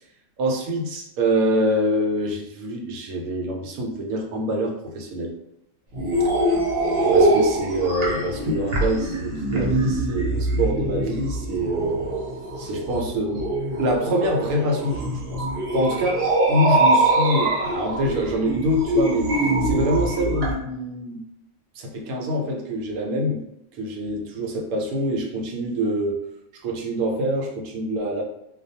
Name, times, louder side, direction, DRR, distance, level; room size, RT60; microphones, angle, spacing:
voice 1, 0.4-5.3 7.1-12.1 12.6-13.5 13.8-15.5 15.7-21.2 21.8-23.4 23.7-26.3 26.6-28.2, equal, 90° right, 1 dB, 1.1 m, -25 dB
sound 1, 5.9-20.5, right 2 dB, 55° right, 0.8 m, -23 dB
2.3 x 2.2 x 2.7 m, 0.82 s
omnidirectional pair, 1.5 m